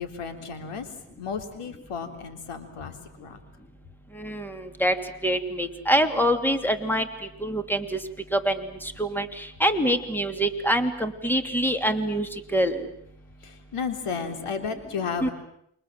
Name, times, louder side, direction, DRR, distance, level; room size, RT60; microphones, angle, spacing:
voice 1, 0.0-3.4 13.4-15.3, left 6 dB, 85° left, 7 dB, 3.7 m, -33 dB
voice 2, 4.1-4.9 5.2-7.1 7.4-8.0 8.3-12.9 15.2-15.3, equal, 5° left, 7 dB, 3.1 m, -25 dB
29.0 x 24.0 x 7.6 m, 0.73 s
cardioid pair, 70°, 50 cm